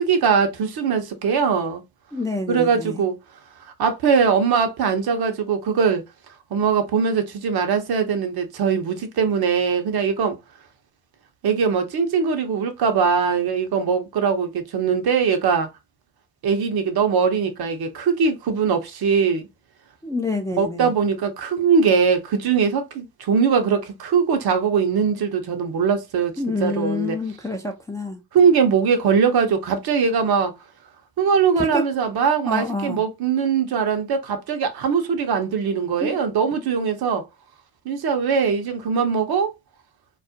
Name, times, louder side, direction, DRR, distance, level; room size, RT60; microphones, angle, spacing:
voice 1, 0.0-1.8 2.5-3.2 3.8-6.0 6.5-10.4 11.4-15.7 16.4-19.5 20.6-26.3 26.6-27.2 28.3-30.5 31.2-37.2 37.9-39.5, right 6 dB, 50° right, 0.7 m, -21 dB
voice 2, 2.1-3.0 20.0-20.9 26.4-28.2 31.6-31.9 32.5-33.0 36.0-36.2, left 2 dB, 10° left, 0.4 m, -27 dB
2.3 x 2.0 x 2.6 m
hypercardioid pair, 45°, 47 cm